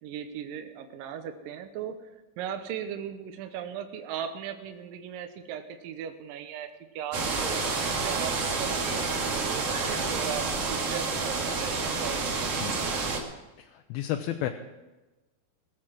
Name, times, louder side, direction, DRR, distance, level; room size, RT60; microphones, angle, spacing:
voice 1, 0.0-2.0 2.4-6.7 6.9-11.4 11.6-12.3, right 9 dB, 70° right, 6 dB, 2.4 m, -38 dB
sound 1, 7.1-13.2, right 4 dB, 45° right, 2.4 m, -29 dB
voice 2, 13.6-14.5, left 12 dB, 80° left, 5 dB, 2.5 m, -32 dB
20.5 x 7.3 x 6.1 m, 1.1 s
omnidirectional pair, 4.4 m